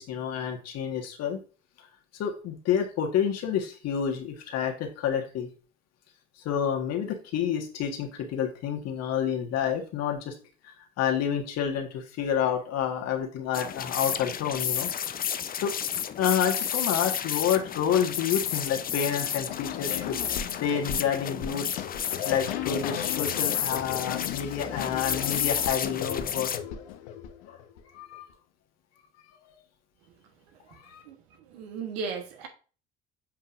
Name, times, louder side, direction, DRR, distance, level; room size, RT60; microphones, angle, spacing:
voice 1, 0.0-1.4 2.2-5.5 6.4-10.3 11.0-14.9 15.6-15.7 16.2-20.2 20.6-21.7 22.1-26.6 27.5-27.6 27.9-28.3 29.5-29.6 30.8-31.0, left 8 dB, 55° left, 1.6 m, -29 dB
sound 1, 13.5-26.6, left 9 dB, 30° left, 0.5 m, -31 dB
sound 2, 19.5-27.8, left 9 dB, 70° left, 0.9 m, -36 dB
voice 2, 31.5-32.5, right 5 dB, 75° right, 1.4 m, -35 dB
7.4 x 5.4 x 2.5 m
hypercardioid pair, 60°, 30 cm